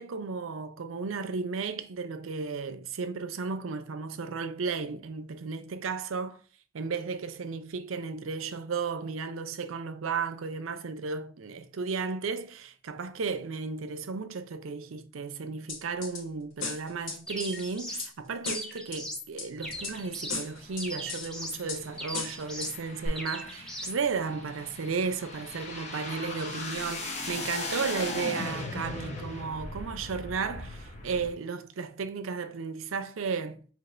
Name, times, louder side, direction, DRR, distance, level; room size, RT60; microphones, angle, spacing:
voice 1, 0.0-6.4 6.7-33.7, right 5 dB, 85° right, 0.5 m, -34 dB
sound 1, 15.7-16.2 16.6-18.1 18.5-19.0 19.4-20.0 20.3-21.3 21.7-21.8 22.1-22.7 23.1-23.2, left 4 dB, 75° left, 1.2 m, -36 dB
sound 2, 17.3-18.1 18.4-19.3 19.6-20.5 20.8-21.6 22.0-22.8 23.2-24.0, equal, 5° left, 0.6 m, -39 dB
sound 3, 19.6-31.3, left 2 dB, 35° left, 0.8 m, -39 dB
6.0 x 2.9 x 2.5 m
head